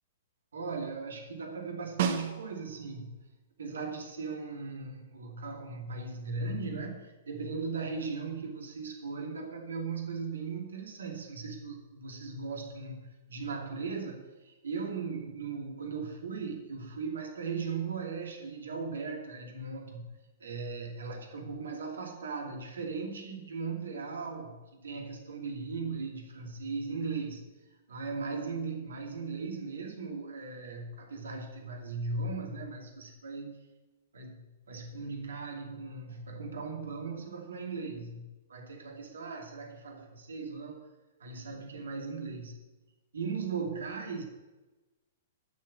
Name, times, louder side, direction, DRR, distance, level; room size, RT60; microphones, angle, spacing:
voice 1, 0.5-3.1 3.6-20.1 20.4-27.5 27.9-33.6 34.1-40.8 41.2-42.6 43.1-44.2, right 4 dB, 75° right, 2 dB, 2.5 m, -38 dB
Snare drum, 2.0-2.9 7.4-7.5, right 7 dB, 55° right, 1.5 m, -32 dB
11.5 x 6.6 x 7.4 m, 1.1 s
figure-of-eight pair, 110°, 0 cm